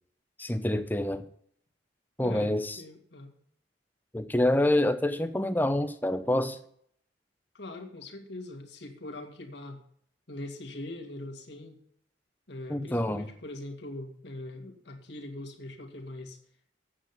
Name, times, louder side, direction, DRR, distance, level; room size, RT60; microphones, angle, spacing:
voice 1, 0.4-1.2 2.2-2.8 4.1-6.6 12.7-13.3, left 1 dB, 10° left, 9 dB, 0.7 m, -27 dB
voice 2, 2.2-2.5 2.8-3.3 7.5-9.8 10.3-11.8 12.5-16.4, left 1 dB, 65° left, 2 dB, 2.1 m, -42 dB
8.8 x 7.7 x 7.4 m, 0.64 s
head